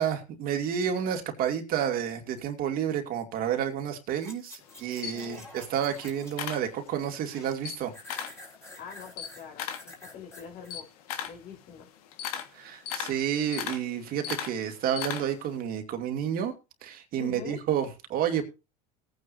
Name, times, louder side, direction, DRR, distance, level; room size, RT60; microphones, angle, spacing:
voice 1, 0.0-7.9 12.5-16.5 16.8-18.4, right 9 dB, 50° right, 4 dB, 2.5 m, -30 dB
sound 1, 4.2-6.5 6.9-7.6 7.9-10.8 11.2-11.3, left 2 dB, 15° left, 4.0 m, -49 dB
Camera, 4.6-7.2 7.5-8.4 8.8-15.5, left 9 dB, 80° left, 1.7 m, -37 dB
voice 2, 5.1-5.5 8.8-10.9 11.3-11.9 17.2-17.6, left 7 dB, 50° left, 3 dB, 4.2 m, -44 dB
18.5 x 9.4 x 2.7 m, 0.28 s
supercardioid pair, 110°, 19 cm